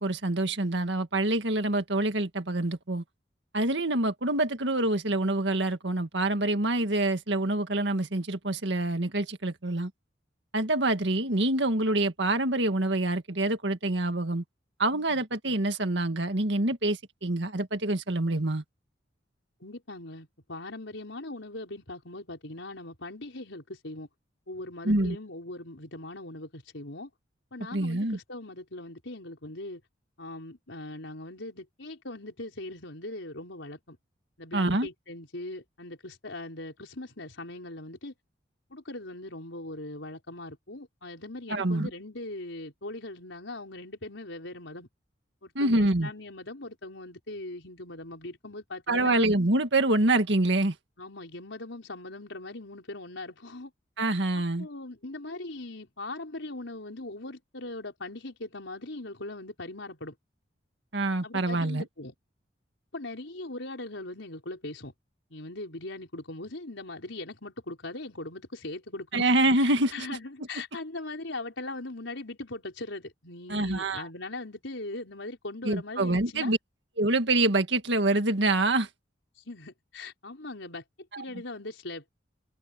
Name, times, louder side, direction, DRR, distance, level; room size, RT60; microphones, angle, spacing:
voice 1, 0.0-3.0 3.5-9.9 10.5-14.4 14.8-18.6 24.8-25.2 27.7-28.2 34.5-34.9 41.5-41.9 45.6-46.1 48.9-50.7 54.0-54.7 60.9-61.8 69.1-70.1 73.5-74.1 75.6-76.6 77.0-78.9 81.1-81.2, right 2 dB, 65° right, 2.0 m, -26 dB
voice 2, 19.6-24.1 24.5-27.1 27.5-29.8 30.2-34.0 34.4-38.1 38.7-44.9 45.4-49.3 51.0-53.7 54.3-60.1 61.2-62.1 62.9-64.9 65.3-69.3 69.9-76.5 79.5-80.8 81.2-82.1, left 2 dB, 80° left, 4.5 m, -40 dB
head